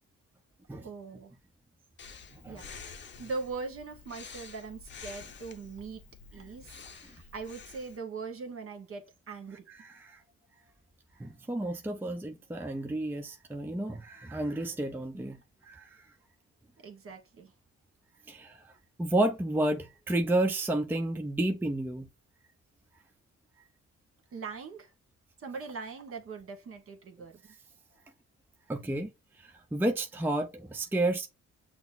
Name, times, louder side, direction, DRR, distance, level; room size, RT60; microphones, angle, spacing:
voice 1, 0.8-1.3 2.5-6.0 6.3-9.6 16.8-17.5 24.3-24.9 25.4-27.3, right 4 dB, 45° right, 1.4 m, -41 dB
Breathing, 2.0-8.0, left 6 dB, 40° left, 0.7 m, -49 dB
voice 2, 9.7-10.2 11.2-15.4 15.6-16.1 18.3-18.7 19.0-22.1 28.7-29.1 29.4-31.3, right 1 dB, 5° right, 0.6 m, -31 dB
6.0 x 2.0 x 3.9 m
cardioid pair, 90°, 30 cm